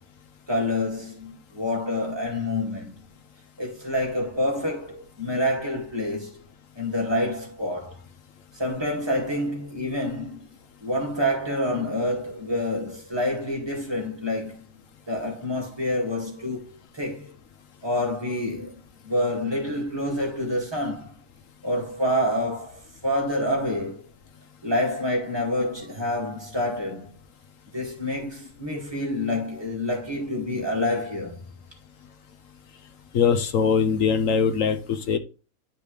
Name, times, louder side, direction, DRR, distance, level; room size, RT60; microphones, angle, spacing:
voice 1, 0.5-3.0 3.6-6.4 6.8-7.9 8.6-10.4 10.8-14.6 15.1-17.3 17.8-21.1 21.6-24.0 24.6-27.1 27.7-31.4, left 1 dB, 20° right, 2.2 m, -27 dB
voice 2, 33.1-35.2, left 6 dB, 75° left, 1.2 m, -22 dB
11.0 x 5.2 x 3.2 m
omnidirectional pair, 1.4 m